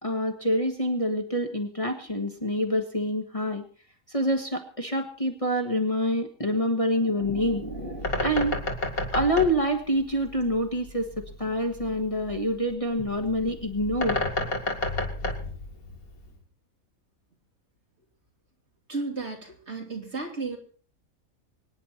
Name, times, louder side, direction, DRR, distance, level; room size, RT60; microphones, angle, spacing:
voice 1, 0.0-3.6 4.1-8.6 9.1-14.2, equal, 25° left, 4 dB, 1.5 m, -27 dB
Bird, 7.2-16.4, left 2 dB, 80° left, 2.8 m, -32 dB
voice 2, 18.9-20.6, right 3 dB, 50° right, 1 dB, 3.5 m, -33 dB
24.5 x 10.0 x 4.3 m, 0.43 s
omnidirectional pair, 1.5 m